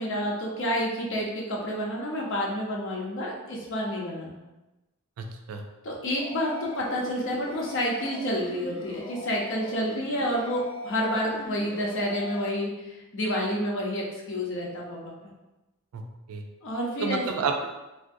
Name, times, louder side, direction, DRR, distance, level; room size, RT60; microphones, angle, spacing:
voice 1, 0.0-4.4 5.8-15.3 16.6-17.2, equal, 60° left, -2 dB, 0.7 m, -29 dB
voice 2, 5.2-5.6 15.9-16.5 17.0-17.7, right 5 dB, 80° right, 4 dB, 0.4 m, -30 dB
sound 1, 6.2-12.5, left 1 dB, 25° left, 0.4 m, -40 dB
3.5 x 2.5 x 2.6 m, 1.0 s
head